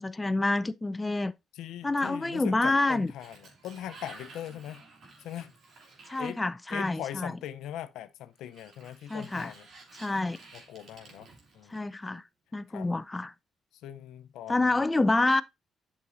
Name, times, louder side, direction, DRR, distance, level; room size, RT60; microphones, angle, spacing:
voice 1, 0.0-1.3 1.8-3.1 6.1-7.3 9.1-9.5 10.0-10.4 11.7-12.2 12.5-13.3 14.5-15.4, left 2 dB, 20° left, 0.4 m, -27 dB
voice 2, 1.5-4.8 5.2-5.5 6.2-6.4 6.7-9.7 10.5-11.3 11.5-11.8 12.1-12.2 12.7-12.9 13.8-14.6, left 11 dB, 85° left, 0.6 m, -40 dB
Sliding door, 2.6-7.2 8.4-12.1, right 3 dB, 65° right, 3.0 m, -53 dB
8.2 x 6.1 x 2.6 m
cardioid pair, 80°, 0 cm